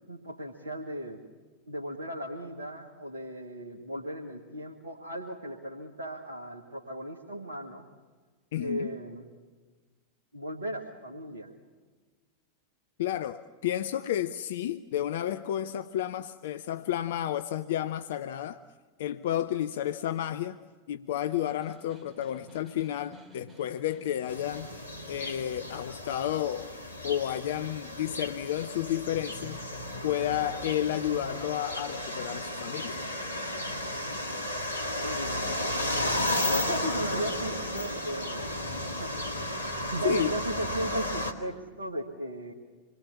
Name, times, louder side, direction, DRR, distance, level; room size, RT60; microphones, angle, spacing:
voice 1, 0.1-1.2 1.7-7.9 8.6-9.3 10.3-11.5 35.0-35.6 36.4-38.6 39.0-39.2 39.9-42.5, right 1 dB, 75° right, 1.9 m, -36 dB
voice 2, 8.5-8.9 13.0-18.6 19.0-20.6 20.9-26.7 27.0-29.6 30.0-33.0 40.0-40.4, left 11 dB, 55° left, 0.6 m, -31 dB
Snare drum, 21.3-25.0, left 2 dB, 20° right, 3.0 m, -54 dB
sound 1, 24.3-41.3, left 1 dB, 80° left, 1.9 m, -34 dB
27.0 x 21.5 x 7.2 m
figure-of-eight pair, 90°, 0 cm